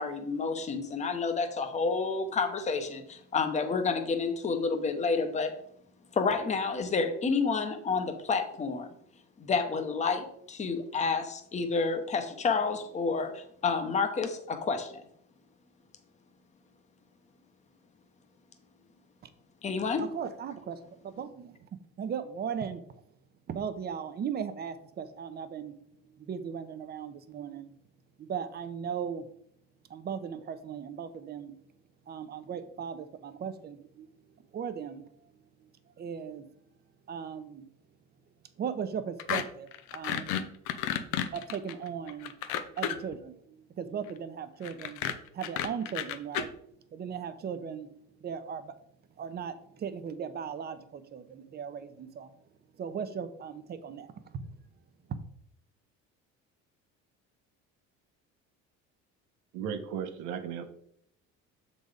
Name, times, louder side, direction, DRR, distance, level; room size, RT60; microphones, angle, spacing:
voice 1, 0.0-5.5 6.1-8.9 9.4-15.0 19.6-20.0, left 4 dB, 25° left, 6 dB, 0.9 m, -29 dB
voice 2, 20.0-21.7 22.0-23.0 23.5-25.8 26.1-27.8 28.2-29.3 29.9-31.5 32.1-34.1 34.4-35.3 35.6-36.5 37.1-37.6 38.6-40.5 41.3-42.3 42.7-45.0 45.3-46.6 46.9-48.8 49.2-52.3 52.7-54.4 55.1-55.2, right 7 dB, 35° right, 11 dB, 0.7 m, -38 dB
sound 1, 39.2-39.4 39.7-43.1 44.6-46.4, left 10 dB, 90° left, 0.7 m, -32 dB
voice 3, 59.5-60.7, right 7 dB, 80° right, 7 dB, 1.0 m, -35 dB
6.8 x 4.1 x 5.0 m, 0.69 s
cardioid pair, 135°, 29 cm